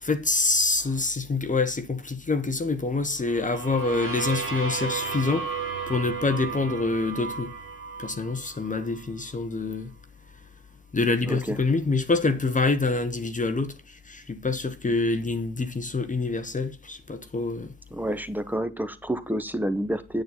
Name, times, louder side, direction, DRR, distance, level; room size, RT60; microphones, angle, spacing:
voice 1, 0.0-7.5 8.0-9.9 10.9-17.7, left 3 dB, 20° left, 1.1 m, -26 dB
sound 1, 3.2-9.0, right 5 dB, 80° right, 2.2 m, -34 dB
voice 2, 17.9-20.2, right 1 dB, 5° right, 1.2 m, -29 dB
9.3 x 9.1 x 4.0 m
figure-of-eight pair, 45°, 43 cm